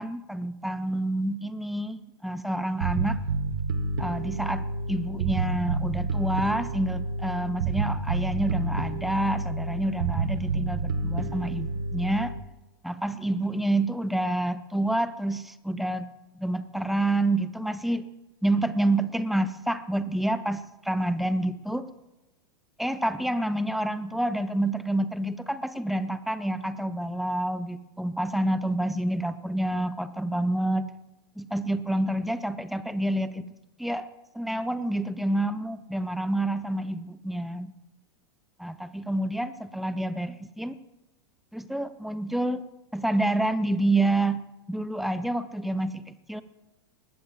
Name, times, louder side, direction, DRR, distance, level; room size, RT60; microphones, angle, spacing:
voice 1, 0.0-3.2 4.0-12.3 12.8-16.1 16.4-18.0 18.4-21.9 22.8-30.9 31.4-33.4 33.8-34.1 34.3-37.7 38.6-40.8 41.5-42.6 42.9-44.4 44.7-46.4, right 1 dB, ahead, 13 dB, 0.7 m, -28 dB
Bass guitar, 2.8-12.4, right 3 dB, 60° right, 1.4 m, -29 dB
20.0 x 16.5 x 2.5 m, 1.0 s
figure-of-eight pair, 90°, 12 cm